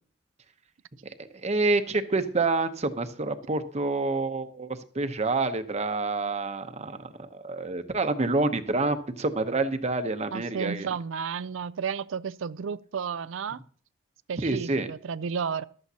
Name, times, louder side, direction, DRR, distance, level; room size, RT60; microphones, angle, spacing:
voice 1, 1.3-10.9 14.4-14.9, right 3 dB, 35° right, 0.8 m, -28 dB
voice 2, 10.3-13.6 14.3-15.6, right 6 dB, 80° right, 0.4 m, -32 dB
14.5 x 12.0 x 2.8 m
head